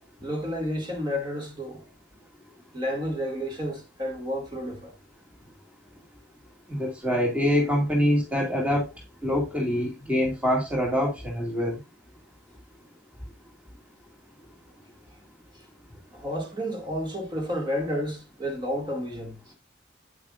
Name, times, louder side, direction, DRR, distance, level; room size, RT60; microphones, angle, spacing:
voice 1, 0.2-1.8 2.7-4.9 15.5-15.6 16.1-19.5, equal, 25° right, 2.2 m, -31 dB
voice 2, 6.8-8.9 9.2-11.8, equal, 10° right, 2.1 m, -25 dB
8.9 x 8.5 x 2.5 m
head